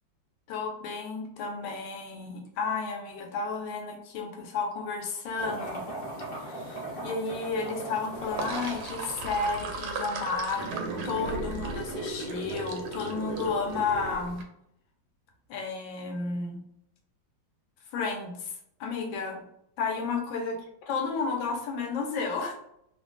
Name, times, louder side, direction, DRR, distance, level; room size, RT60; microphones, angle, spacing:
voice 1, 0.5-5.8 6.4-14.4 15.5-16.6 17.9-18.5 18.8-19.4 19.8-20.6 20.9-22.5, left 4 dB, 75° left, 3 dB, 1.4 m, -32 dB
sound 1, 5.4-9.7, right 1 dB, 30° left, 1.0 m, -38 dB
Sink (filling or washing), 8.2-14.4, right 3 dB, 75° right, 0.9 m, -35 dB
3.3 x 2.2 x 2.4 m, 0.74 s
omnidirectional pair, 2.2 m